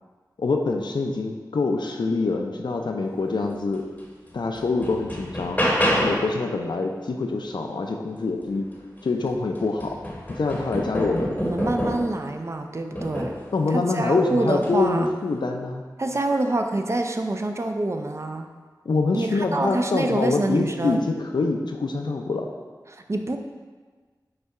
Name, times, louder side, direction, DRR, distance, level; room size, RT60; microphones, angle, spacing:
voice 1, 0.4-3.8 4.3-5.6 5.9-8.7 9.0-10.0 10.3-11.4 13.5-15.8 18.9-22.5, left 3 dB, 80° left, 3 dB, 0.4 m, -25 dB
sound 1, 4.0-4.1 4.6-6.4 8.7-8.8 9.3-12.2 13.0-13.5 14.5-14.8, equal, 20° left, 0.8 m, -27 dB
voice 2, 11.4-13.3 13.7-15.1 16.0-18.5 19.1-21.0 22.9-23.4, right 2 dB, 40° right, 5 dB, 0.4 m, -26 dB
5.5 x 2.2 x 3.6 m, 1.4 s
wide cardioid pair, 55°, 8 cm